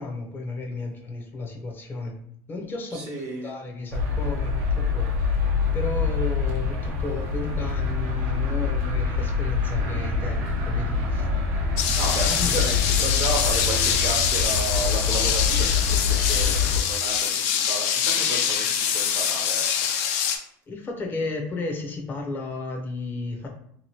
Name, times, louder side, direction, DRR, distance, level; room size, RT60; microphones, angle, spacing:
voice 1, 0.0-2.2 2.5-3.1 3.4-11.3 12.3-12.7 20.7-23.5, left 2 dB, 25° left, 2 dB, 0.5 m, -33 dB
voice 2, 2.9-3.5 12.0-19.8, right 3 dB, 45° right, -1 dB, 0.7 m, -33 dB
sound 1, 3.9-16.8, left 5 dB, 85° right, 0.7 m, -25 dB
sound 2, 11.8-20.4, left 8 dB, 70° left, 0.4 m, -24 dB
2.8 x 2.5 x 2.9 m, 0.67 s
supercardioid pair, 135°, 8 cm